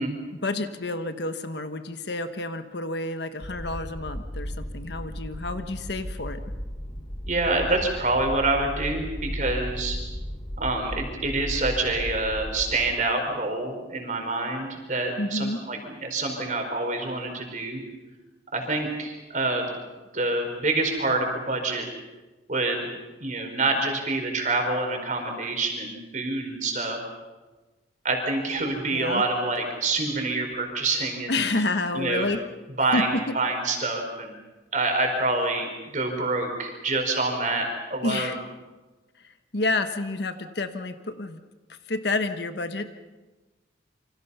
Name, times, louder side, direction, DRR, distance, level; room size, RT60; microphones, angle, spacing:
voice 1, 0.3-6.4 15.2-15.6 28.9-29.2 31.3-32.4 32.9-33.3 38.0-38.4 39.5-41.4 41.9-42.9, left 2 dB, 60° left, 9 dB, 1.2 m, -29 dB
sound 1, 3.4-13.0, equal, 25° left, 1.5 m, -35 dB
voice 2, 7.3-10.0 10.6-17.8 18.5-19.7 20.1-21.9 22.5-22.8 23.2-27.0 28.0-31.4 31.9-32.3 32.8-34.3 34.7-38.3, right 2 dB, 40° right, 3 dB, 4.7 m, -27 dB
28.0 x 25.5 x 5.7 m, 1.2 s
head